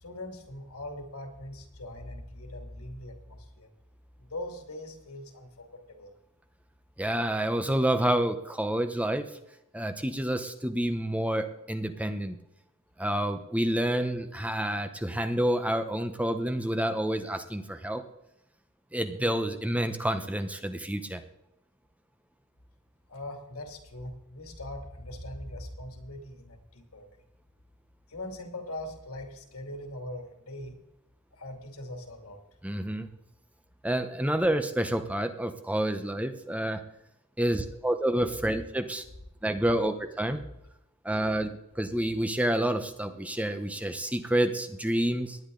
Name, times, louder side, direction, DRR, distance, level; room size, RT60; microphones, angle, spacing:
voice 1, 0.0-3.7 4.2-6.1 23.1-27.1 28.1-30.8 31.3-32.4, left 1 dB, 75° left, 4 dB, 2.6 m, -41 dB
voice 2, 7.0-9.3 9.7-12.4 13.0-18.0 18.9-21.2 32.6-33.1 33.8-36.8 37.4-39.0 39.4-40.4 41.0-45.4, right 1 dB, 5° right, 8 dB, 0.7 m, -28 dB
19.0 x 10.5 x 3.8 m, 0.82 s
head